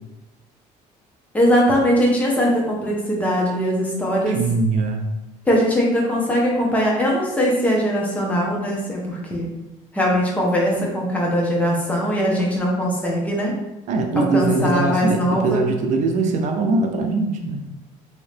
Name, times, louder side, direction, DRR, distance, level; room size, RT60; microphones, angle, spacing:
voice 1, 1.3-4.4 5.5-9.5 9.9-13.5 14.2-15.6, equal, 10° left, -3 dB, 0.9 m, -20 dB
voice 2, 4.3-5.1 13.9-17.6, right 3 dB, 60° right, 4 dB, 0.5 m, -21 dB
3.0 x 2.8 x 3.2 m, 0.99 s
cardioid pair, 115°, 14 cm